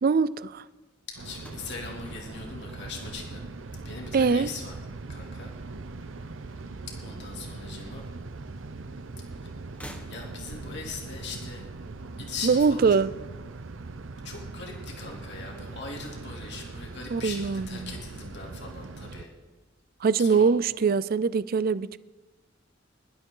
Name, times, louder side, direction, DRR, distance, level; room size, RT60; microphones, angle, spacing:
voice 1, 0.0-0.7 4.1-4.5 12.4-13.1 17.1-17.9 20.0-22.0, right 5 dB, 50° right, 0.4 m, -23 dB
voice 2, 1.1-3.5 3.8-4.7 5.1-5.5 6.9-8.0 9.4-9.5 10.1-11.6 12.2-13.0 14.2-19.3 20.2-20.5, left 4 dB, 65° left, 2.9 m, -40 dB
sound 1, 1.2-19.3, right 3 dB, 85° right, 0.7 m, -41 dB
sound 2, 1.4-3.7 4.0-4.6 5.6-6.7 6.9-7.0 8.2-8.3 9.6-10.7, equal, 10° left, 1.5 m, -49 dB
23.0 x 11.5 x 3.9 m
head